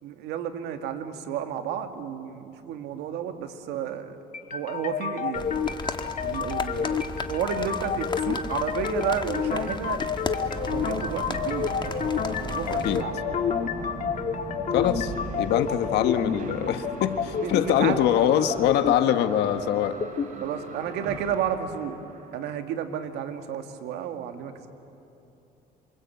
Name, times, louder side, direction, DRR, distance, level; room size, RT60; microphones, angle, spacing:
voice 1, 0.0-4.2 4.5-5.6 6.2-10.0 10.7-13.1 17.4-18.0 20.4-22.0 22.3-24.7, right 9 dB, 90° right, 6 dB, 2.1 m, -32 dB
sound 1, 4.3-20.3, left 6 dB, 45° left, 1.8 m, -30 dB
sound 2, 5.3-13.0, left 4 dB, 25° left, 1.6 m, -36 dB
sound 3, 10.6-22.5, right 4 dB, 50° right, 3.6 m, -39 dB
voice 2, 12.7-13.0 14.7-15.1 15.4-20.0, left 10 dB, 85° left, 9 dB, 1.5 m, -23 dB
28.0 x 25.0 x 8.5 m, 2.9 s
cardioid pair, 110°, 17 cm